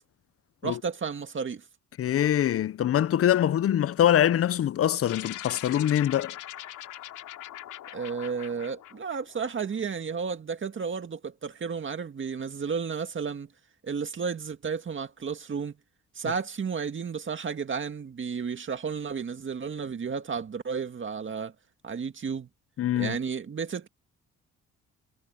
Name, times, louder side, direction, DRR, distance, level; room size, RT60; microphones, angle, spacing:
voice 1, 0.6-1.6 7.9-13.5 13.8-15.7 16.1-21.5 21.8-22.5 22.9-23.9, right 6 dB, 40° right, 2.0 m, -32 dB
voice 2, 2.0-6.4 22.8-23.2, left 11 dB, 50° left, 0.6 m, -24 dB
sound 1, 5.1-9.8, left 13 dB, 85° left, 3.2 m, -42 dB
cardioid pair, 90°, 30 cm